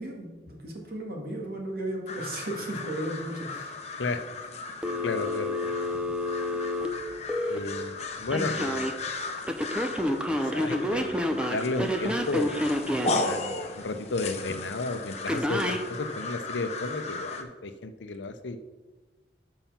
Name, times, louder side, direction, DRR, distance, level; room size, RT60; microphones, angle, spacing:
voice 1, 0.0-3.8, right 1 dB, 55° right, -1 dB, 2.0 m, -35 dB
sound 1, 2.1-17.4, left 3 dB, 35° left, 0.8 m, -36 dB
Telephone, 4.8-7.6 8.3-8.9 9.5-13.2 15.3-15.8, left 1 dB, 5° right, 0.6 m, -29 dB
voice 2, 5.0-5.5 7.5-9.0 10.3-12.9 13.2-18.6, left 3 dB, 85° left, 9 dB, 0.7 m, -33 dB
7.3 x 5.6 x 5.8 m, 1.2 s
head